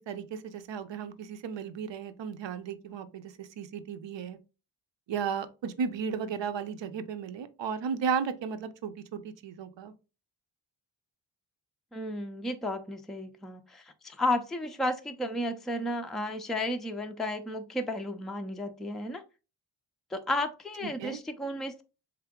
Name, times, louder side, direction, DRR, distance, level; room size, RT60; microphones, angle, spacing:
voice 1, 0.1-4.4 5.1-9.9 21.0-21.2, right 6 dB, 65° right, 11 dB, 0.7 m, -34 dB
voice 2, 11.9-19.2 20.1-21.8, left 1 dB, ahead, 6 dB, 0.4 m, -33 dB
3.8 x 3.4 x 3.6 m, 0.31 s
wide cardioid pair, 95°, 47 cm